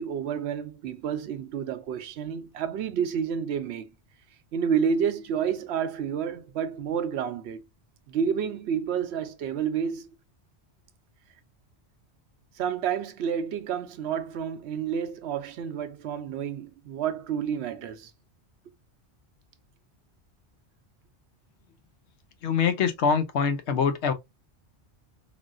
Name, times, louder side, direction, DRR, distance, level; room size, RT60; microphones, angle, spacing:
voice 1, 0.0-3.9 4.5-7.6 8.1-10.1 12.6-18.1, right 7 dB, 75° right, 0.8 m, -29 dB
voice 2, 22.4-24.1, left 6 dB, 80° left, 0.9 m, -24 dB
3.4 x 2.5 x 2.4 m
omnidirectional pair, 1.1 m